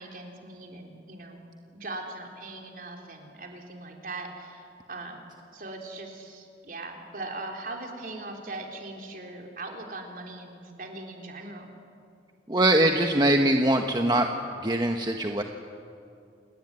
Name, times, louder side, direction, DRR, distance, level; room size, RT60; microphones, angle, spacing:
voice 1, 0.0-1.4 1.7-5.2 5.5-11.7, right 2 dB, 50° right, 2 dB, 3.8 m, -40 dB
voice 2, 12.5-14.3 14.6-15.4, right 1 dB, 25° right, 3 dB, 1.2 m, -22 dB
29.0 x 18.5 x 9.9 m, 2.5 s
head